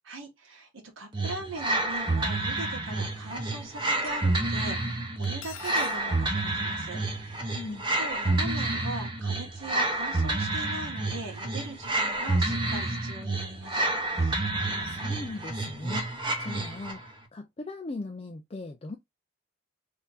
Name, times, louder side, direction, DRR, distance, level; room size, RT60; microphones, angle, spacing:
voice 1, 0.0-0.7 1.0-7.5 8.0-13.9 14.2-14.4, right 2 dB, 80° right, 1.7 m, -40 dB
sound 1, 1.1-17.1, right 2 dB, 25° right, 0.8 m, -29 dB
Cutlery silverware, 5.2-6.0, left 10 dB, 80° left, 0.6 m, -43 dB
voice 2, 14.8-19.0, left 2 dB, 30° left, 0.4 m, -39 dB
3.6 x 2.7 x 4.0 m
head